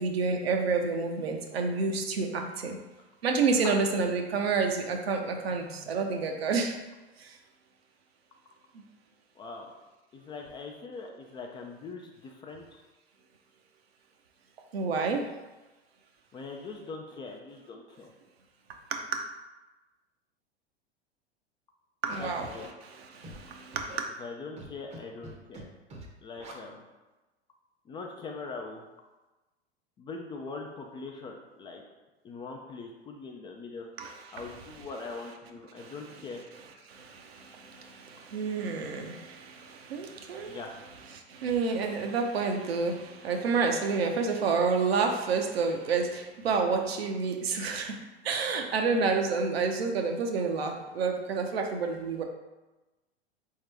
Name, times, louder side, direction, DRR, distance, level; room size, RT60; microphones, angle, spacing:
voice 1, 0.0-2.8 3.2-6.8 7.2-7.4 8.7-8.8 14.7-15.3 18.9-19.3 22.0-22.5 22.8-24.1 34.0-34.5 35.8-35.9 36.9-40.6 41.1-48.0 48.2-52.2, right 4 dB, 70° right, 3 dB, 0.8 m, -29 dB
voice 2, 3.6-4.2 9.4-9.7 10.1-12.8 16.3-18.1 22.2-22.6 24.2-25.7 26.2-26.9 27.9-28.8 30.0-31.8 32.2-33.9 34.3-36.4 40.4-40.7, left 4 dB, 15° left, 1 dB, 0.3 m, -42 dB
Scratching (performance technique), 22.1-22.7 23.2-23.4 23.7-24.0 24.6-25.0 25.2-25.6 25.9-26.1 26.4-26.5, right 1 dB, 20° right, 0.7 m, -44 dB
3.9 x 3.7 x 3.3 m, 1.1 s
figure-of-eight pair, 90°, 32 cm